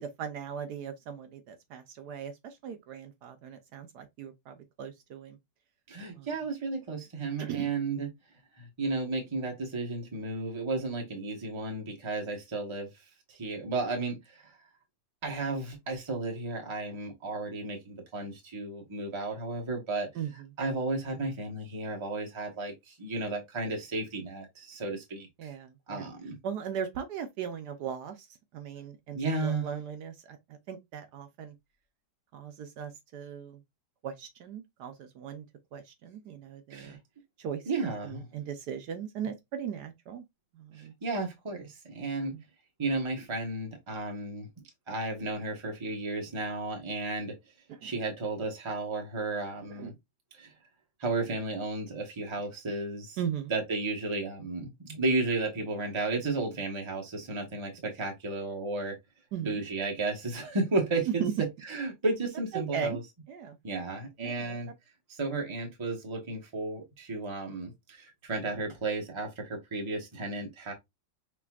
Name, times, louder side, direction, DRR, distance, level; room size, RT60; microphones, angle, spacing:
voice 1, 0.0-5.4 6.2-6.3 7.4-7.7 20.1-20.5 25.4-26.1 26.4-28.3 28.5-31.5 32.3-33.6 34.0-35.4 35.7-37.0 37.4-40.2 40.5-40.9 42.3-42.4 47.8-47.9 49.7-50.0 53.2-53.5 59.3-59.6 61.1-61.3 62.5-63.0 63.3-63.6 64.2-64.6, right 8 dB, 70° right, 1.2 m, -38 dB
voice 2, 5.9-8.1 8.5-12.9 13.3-14.5 15.2-20.1 20.6-25.5 25.9-26.4 29.1-29.7 36.7-37.0 37.7-38.3 40.8-42.4 42.8-44.5 44.9-47.4 47.8-49.9 50.3-50.5 51.0-53.2 53.5-59.0 59.4-61.3 61.7-63.0 63.6-64.7 65.1-70.7, right 3 dB, 20° right, 0.8 m, -33 dB
5.9 x 3.0 x 2.3 m
omnidirectional pair, 1.9 m